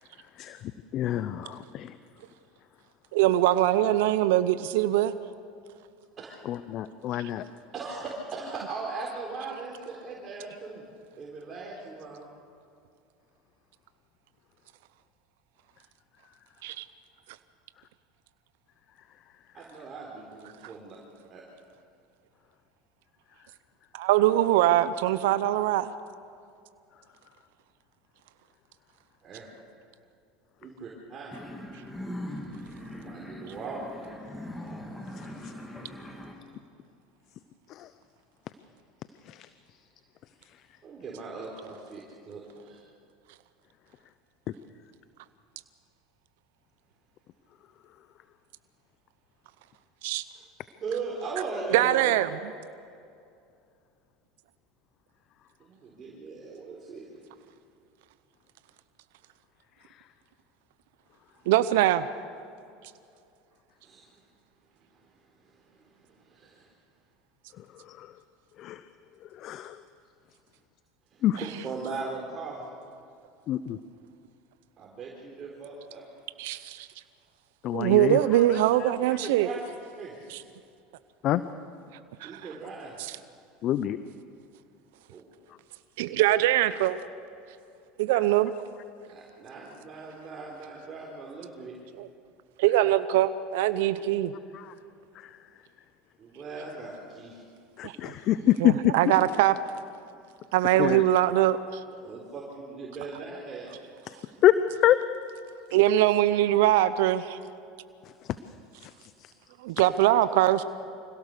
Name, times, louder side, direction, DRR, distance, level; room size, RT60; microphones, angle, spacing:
voice 1, 0.4-2.0 6.4-7.4 35.2-35.5 37.7-37.9 39.2-39.5 67.6-68.1 68.6-68.9 69.2-69.8 71.2-71.4 73.5-73.8 77.6-78.9 81.2-81.4 83.6-84.0 94.5-94.7 95.1-95.4 97.8-99.1 100.8-101.0 104.1-104.2 104.4-104.6 104.8-105.0 108.8-109.3, left 12 dB, 50° left, 13 dB, 0.7 m, -27 dB
voice 2, 3.1-5.1 16.6-16.8 23.9-25.9 50.0-50.2 51.7-52.5 61.5-62.1 76.4-76.9 77.7-79.5 80.3-80.4 82.2-82.4 83.0-83.1 86.0-87.0 88.0-88.5 92.0-92.1 92.6-94.3 97.8-98.1 98.6-99.5 100.5-101.6 105.7-107.4 109.6-110.6, right 14 dB, 75° right, 14 dB, 0.7 m, -22 dB
voice 3, 7.7-10.8 11.2-12.3 19.5-21.0 21.3-21.4 29.2-29.4 30.6-31.3 32.9-33.8 40.8-42.8 50.4-50.5 50.8-52.1 55.6-57.1 63.8-64.0 66.2-66.7 71.1-72.6 74.8-76.1 79.0-79.6 80.0-80.1 82.2-83.0 85.1-85.2 89.1-91.7 96.2-97.4 102.0-103.7, right 4 dB, 35° right, -3 dB, 4.1 m, -39 dB
sound 1, 31.3-36.3, left 1 dB, 10° left, 3.1 m, -40 dB
25.5 x 17.0 x 6.8 m, 2.5 s
hypercardioid pair, 90°, 0 cm